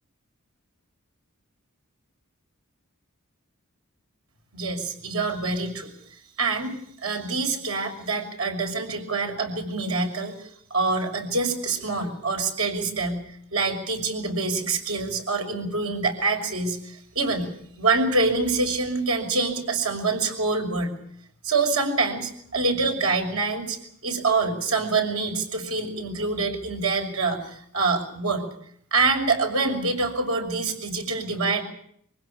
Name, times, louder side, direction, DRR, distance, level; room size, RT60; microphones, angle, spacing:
voice 1, 4.5-5.9 6.4-13.2 13.5-17.5 17.8-20.9 21.4-28.4 28.9-31.6, right 3 dB, 80° right, 3 dB, 6.1 m, -26 dB
24.5 x 16.5 x 8.9 m, 0.68 s
head